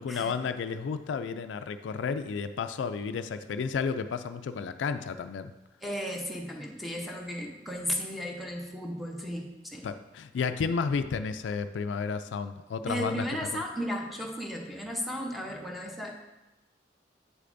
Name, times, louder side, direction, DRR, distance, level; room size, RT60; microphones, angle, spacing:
voice 1, 0.0-5.5 9.8-13.3, left 5 dB, 85° left, 10 dB, 0.3 m, -32 dB
voice 2, 5.8-9.9 12.9-16.2, equal, ahead, 0 dB, 0.8 m, -35 dB
7.4 x 6.6 x 2.6 m, 1.0 s
head